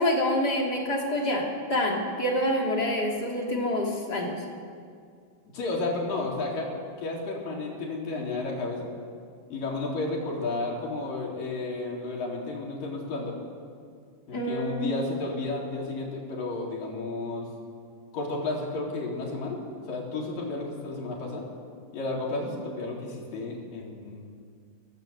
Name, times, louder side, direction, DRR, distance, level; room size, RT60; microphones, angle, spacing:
voice 1, 0.0-4.3 14.3-14.9, left 1 dB, 25° left, -1 dB, 3.1 m, -27 dB
voice 2, 5.5-6.7 7.0-8.9 9.5-13.3 14.3-17.5 18.1-19.6 19.9-21.5 21.9-24.3, left 2 dB, 55° left, -2 dB, 5.3 m, -32 dB
23.5 x 17.5 x 8.1 m, 2.2 s
omnidirectional pair, 4.8 m